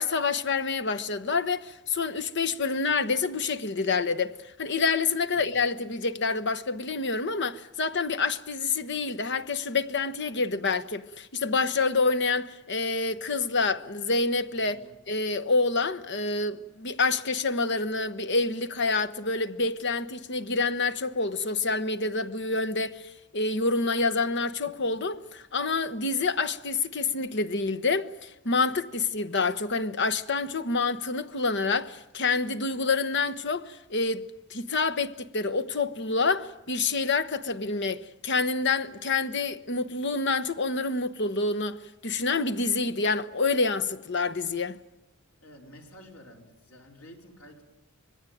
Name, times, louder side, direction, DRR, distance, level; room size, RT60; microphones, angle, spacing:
voice 1, 0.0-14.8 15.1-23.0 23.3-44.8, left 4 dB, 55° left, 1.1 m, -27 dB
voice 2, 14.6-14.9 45.4-47.6, equal, 80° left, 4.6 m, -50 dB
26.0 x 21.0 x 9.3 m
head